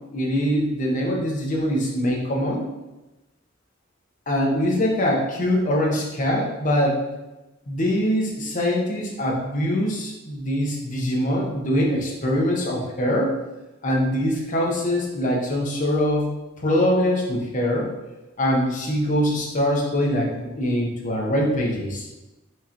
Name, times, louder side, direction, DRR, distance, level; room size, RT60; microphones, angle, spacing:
voice 1, 0.1-2.6 4.3-7.0 7.7-13.3 13.8-16.3 16.6-17.9 18.4-22.1, equal, 40° left, -1 dB, 0.9 m, -23 dB
4.7 x 3.9 x 2.9 m, 1.0 s
head